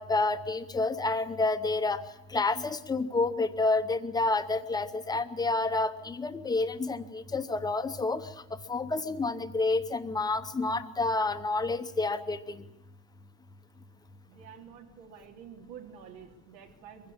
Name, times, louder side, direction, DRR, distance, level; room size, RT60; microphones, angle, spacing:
voice 1, 0.0-2.0 2.3-8.3 8.7-12.6, left 3 dB, 10° left, 10 dB, 0.8 m, -29 dB
voice 2, 14.3-17.1, right 8 dB, 85° right, 3 dB, 3.6 m, -49 dB
22.5 x 16.5 x 8.7 m, 0.86 s
supercardioid pair, 145°, 49 cm